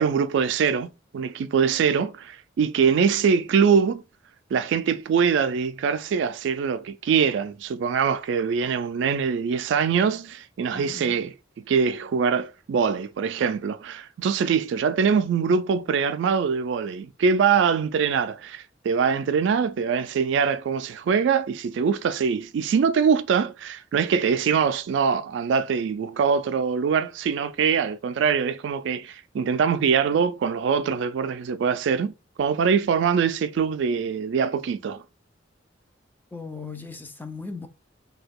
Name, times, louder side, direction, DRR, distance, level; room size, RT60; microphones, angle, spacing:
voice 1, 0.0-4.0 4.5-32.1 32.4-35.0, right 6 dB, 70° right, 0.3 m, -23 dB
voice 2, 10.7-11.2 36.3-37.7, left 4 dB, 10° left, 0.3 m, -37 dB
2.8 x 2.3 x 3.5 m
head